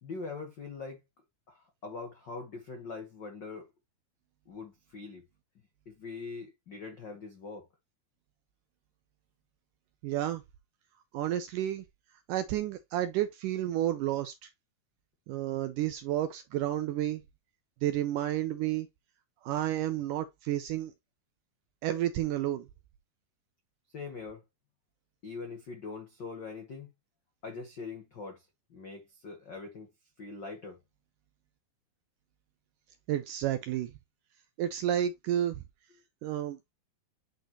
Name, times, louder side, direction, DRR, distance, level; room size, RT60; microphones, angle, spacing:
voice 1, 0.0-1.0 1.5-3.7 4.5-5.2 5.8-7.7 23.9-24.4 25.2-26.9 27.4-28.4 28.7-29.9 30.2-30.8, left 4 dB, 80° left, 1.0 m, -42 dB
voice 2, 10.0-10.4 11.1-11.8 12.3-14.3 15.3-17.2 17.8-18.9 19.4-20.9 21.8-22.7 33.1-33.9 34.6-35.6 36.2-36.6, right 12 dB, 80° right, 1.9 m, -31 dB
9.1 x 4.3 x 2.8 m
omnidirectional pair, 4.4 m